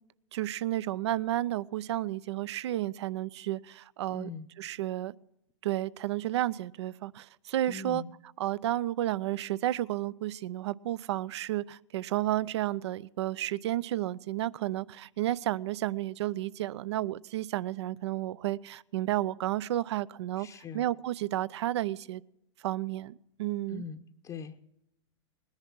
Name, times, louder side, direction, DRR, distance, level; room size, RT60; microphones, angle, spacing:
voice 1, 0.3-4.3 4.6-5.1 5.6-8.0 8.4-20.5 20.7-22.2 22.6-23.8, right 14 dB, 65° right, 0.5 m, -32 dB
voice 2, 4.1-4.5 7.7-8.1 20.4-20.9 23.7-24.6, left 6 dB, 20° left, 0.8 m, -42 dB
20.0 x 10.5 x 6.1 m
hypercardioid pair, 110°, 16 cm